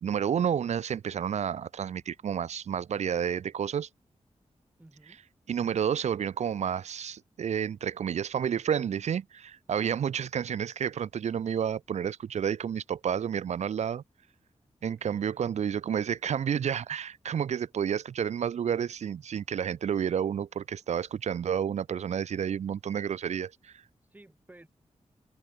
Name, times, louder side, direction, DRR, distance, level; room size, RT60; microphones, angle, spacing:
voice 1, 0.0-3.9 5.5-14.0 14.8-23.8, right 8 dB, 75° right, 0.4 m, -30 dB
voice 2, 4.8-5.2 14.8-15.8 24.0-24.7, right 1 dB, 15° right, 7.5 m, -56 dB
open air
wide cardioid pair, 135°, 12 cm